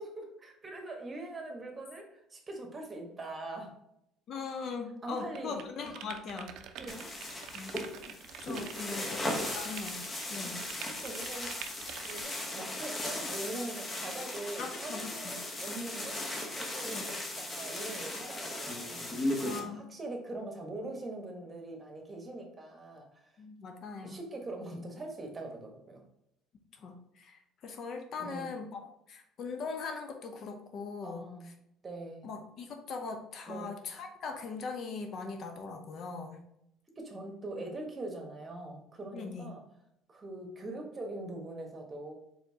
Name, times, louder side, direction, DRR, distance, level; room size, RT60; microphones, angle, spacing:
voice 1, 0.0-3.7 5.0-5.9 6.8-7.1 8.9-9.2 10.3-10.5 11.0-11.6 12.0-16.2 16.5-23.3 24.0-26.0 28.2-28.5 31.0-31.5 31.8-32.3 33.5-33.7 37.0-39.6 40.1-42.1, right 2 dB, 25° right, 2 dB, 1.2 m, -42 dB
voice 2, 4.3-6.5 7.5-7.8 8.1-10.6 14.6-15.4 16.9-17.1 19.4-19.9 23.4-24.2 26.8-28.8 29.1-31.3 32.2-36.4 39.1-39.5, left 4 dB, 55° left, 4 dB, 0.6 m, -40 dB
sound 1, 5.3-12.2, right 8 dB, 65° right, 0.4 m, -46 dB
sound 2, 6.9-19.6, left 1 dB, 25° left, 1.0 m, -37 dB
4.3 x 3.5 x 2.8 m, 0.78 s
supercardioid pair, 85°, 0 cm